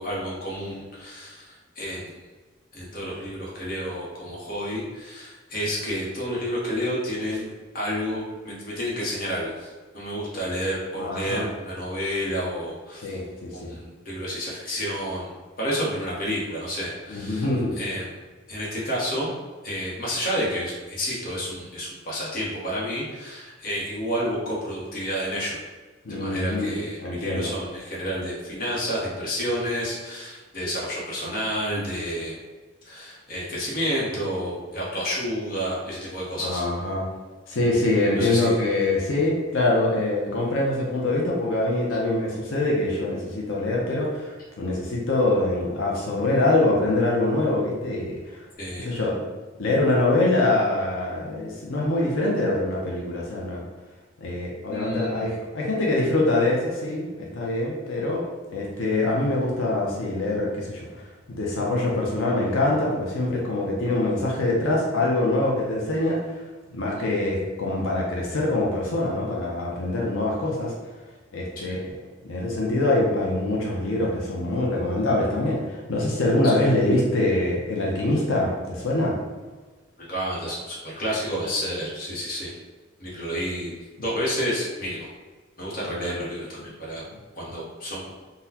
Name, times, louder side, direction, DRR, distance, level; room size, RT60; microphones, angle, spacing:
voice 1, 0.0-2.1 2.7-7.5 7.7-13.1 13.5-15.3 15.6-17.5 17.8-18.1 18.5-19.3 19.6-25.6 26.1-32.4 32.8-36.6 38.2-38.6 48.6-48.9 54.7-55.3 67.0-67.1 71.6-71.8 76.4-76.5 80.0-82.5 83.0-83.7 84.0-85.1 85.6-87.0 87.3-88.1, equal, 45° left, -5 dB, 0.9 m, -30 dB
voice 2, 11.0-11.4 13.0-13.7 17.1-17.8 26.0-26.7 27.0-27.5 36.4-37.1 37.5-48.4 48.8-49.2 49.6-53.6 54.2-58.2 58.5-60.9 61.3-66.4 66.7-70.7 71.3-71.9 72.2-79.2, left 2 dB, 90° left, -3 dB, 0.6 m, -24 dB
3.9 x 2.2 x 2.8 m, 1.3 s
head